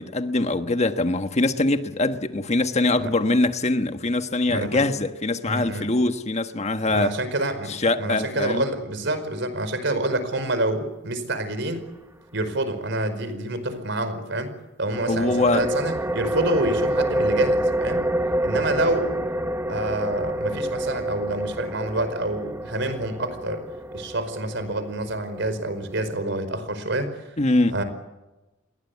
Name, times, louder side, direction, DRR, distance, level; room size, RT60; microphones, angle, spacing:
voice 1, 0.0-7.2 7.7-8.6 15.1-15.7 27.4-27.7, left 2 dB, 35° left, 1.4 m, -23 dB
voice 2, 4.5-4.8 5.5-5.9 6.9-11.9 12.3-14.5 14.8-18.1 18.4-19.2 19.7-23.6 23.9-27.4 27.7-27.8, right 2 dB, 65° right, 4.9 m, -27 dB
sound 1, 14.9-26.2, right 1 dB, 15° right, 1.2 m, -27 dB
29.5 x 22.0 x 8.4 m
head